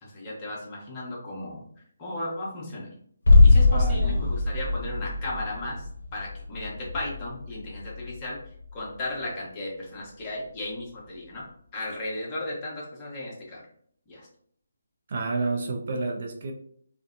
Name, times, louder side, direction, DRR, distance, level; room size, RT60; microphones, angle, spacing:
voice 1, 0.0-1.6 2.0-2.9 3.4-5.9 6.1-8.4 8.7-11.4 11.7-13.6 14.1-14.3, left 2 dB, 20° left, -5 dB, 0.9 m, -35 dB
sound 1, 3.3-9.0 9.3-9.4, left 3 dB, 65° left, 0.6 m, -22 dB
voice 2, 3.7-4.3 15.1-16.5, right 3 dB, 45° right, 3 dB, 0.4 m, -30 dB
2.6 x 2.1 x 2.5 m, 0.62 s
figure-of-eight pair, 150°, 0 cm